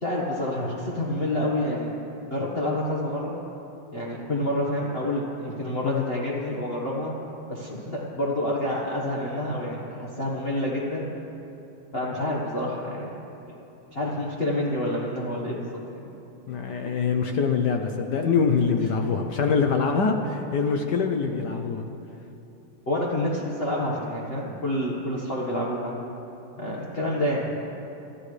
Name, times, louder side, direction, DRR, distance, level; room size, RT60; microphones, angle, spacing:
voice 1, 0.0-1.9 2.3-3.4 3.9-7.1 7.5-11.1 11.9-13.1 13.5-13.6 13.9-16.1 18.8-18.9 22.9-25.9 26.6-27.6, left 1 dB, 30° left, -5 dB, 1.4 m, -28 dB
voice 2, 16.5-21.9, left 5 dB, 65° left, 4 dB, 1.2 m, -24 dB
25.5 x 13.0 x 3.3 m, 2.9 s
omnidirectional pair, 2.4 m